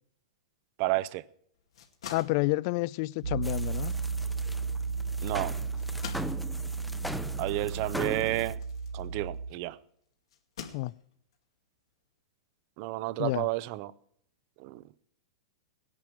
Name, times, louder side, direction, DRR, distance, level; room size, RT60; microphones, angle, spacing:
voice 1, 0.8-1.2 5.2-5.5 7.4-8.6 8.9-9.8 12.8-13.9 14.6-14.8, right 19 dB, 45° right, 0.6 m, -31 dB
sound 1, 1.5-9.6 10.3-11.3, left 8 dB, 80° left, 2.2 m, -48 dB
voice 2, 2.1-3.9 10.7-10.9 13.2-13.5, left 21 dB, 50° left, 0.4 m, -29 dB
Piano, 3.2-9.5, right 4 dB, 85° right, 0.7 m, -34 dB
sound 2, 3.4-8.5, equal, ahead, 0.7 m, -40 dB
17.5 x 10.5 x 4.6 m
hypercardioid pair, 130°, 3 cm